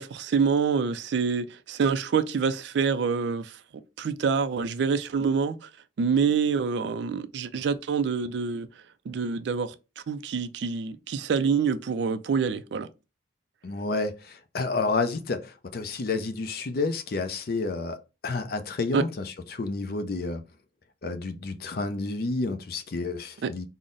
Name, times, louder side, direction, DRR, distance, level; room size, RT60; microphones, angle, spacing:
voice 1, 0.0-3.6 4.0-5.7 6.0-8.7 9.1-12.9 18.9-19.0 23.4-23.5, right 5 dB, 65° right, 0.3 m, -26 dB
voice 2, 13.6-18.0 18.2-19.2 19.5-20.4 21.0-23.7, left 3 dB, 50° left, 0.4 m, -30 dB
3.8 x 2.0 x 3.8 m
head